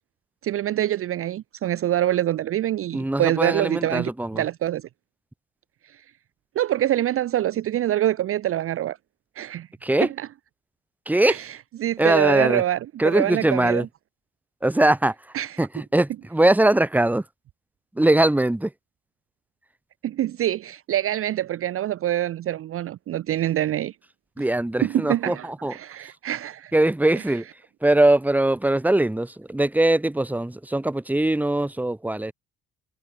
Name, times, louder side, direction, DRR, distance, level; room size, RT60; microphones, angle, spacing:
voice 1, 0.4-4.9 6.6-9.0 9.4-9.7 10.2-10.3 11.2-11.5 11.8-13.9 15.3-15.6 20.0-23.9 24.8-26.7, right 12 dB, 45° right, 0.5 m, -25 dB
voice 2, 2.9-4.4 9.8-10.1 11.1-11.4 12.0-12.6 13.0-13.9 14.6-15.1 15.6-17.2 17.9-18.7 24.4-25.7 26.7-27.4 27.8-32.3, right 1 dB, 5° right, 1.0 m, -21 dB
hypercardioid pair, 60°, 32 cm